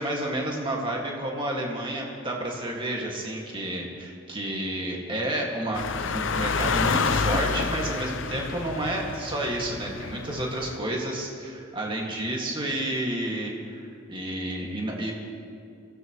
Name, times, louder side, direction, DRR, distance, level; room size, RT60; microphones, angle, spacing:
voice 1, 0.0-15.1, right 1 dB, 25° right, -1 dB, 2.0 m, -30 dB
sound 1, 5.7-10.8, left 4 dB, 65° left, 0.7 m, -28 dB
24.0 x 16.0 x 3.1 m, 2.5 s
head